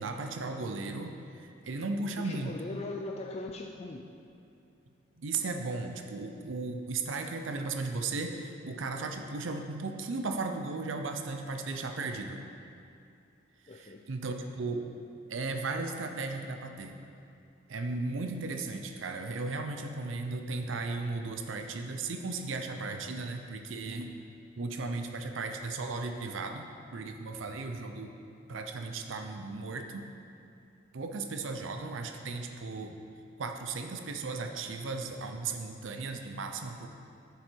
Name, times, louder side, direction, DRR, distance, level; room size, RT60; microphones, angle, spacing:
voice 1, 0.0-2.6 5.2-12.4 13.7-14.9 15.3-17.0 17.7-24.2 24.6-28.1 28.5-30.1 30.9-33.0 33.4-36.9, right 3 dB, 80° right, 5 dB, 0.6 m, -36 dB
voice 2, 2.2-4.1 13.7-14.1, left 2 dB, 35° left, 2 dB, 0.4 m, -40 dB
9.6 x 7.0 x 4.5 m, 2.6 s
head